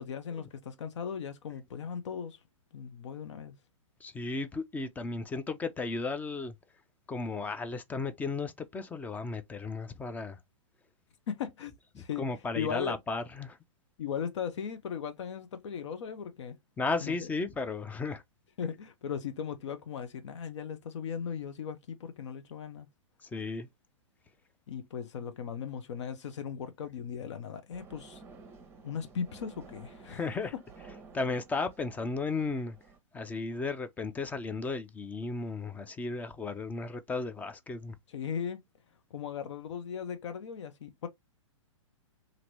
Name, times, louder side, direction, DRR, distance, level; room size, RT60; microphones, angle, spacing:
voice 1, 0.0-2.4 2.7-3.6 11.3-11.7 12.0-12.3 12.6-13.0 14.0-16.6 17.0-17.3 18.6-22.9 24.7-28.2 28.8-30.3 38.1-38.6 39.1-41.1, left 7 dB, 65° left, 0.6 m, -37 dB
voice 2, 4.0-6.5 7.1-10.4 12.0-13.6 16.8-18.2 23.2-23.7 30.1-30.5 31.1-32.8 33.1-37.9, left 3 dB, 10° left, 0.4 m, -34 dB
sound 1, 27.7-33.0, right 4 dB, 15° right, 0.8 m, -53 dB
2.9 x 2.6 x 2.9 m
hypercardioid pair, 120°, 16 cm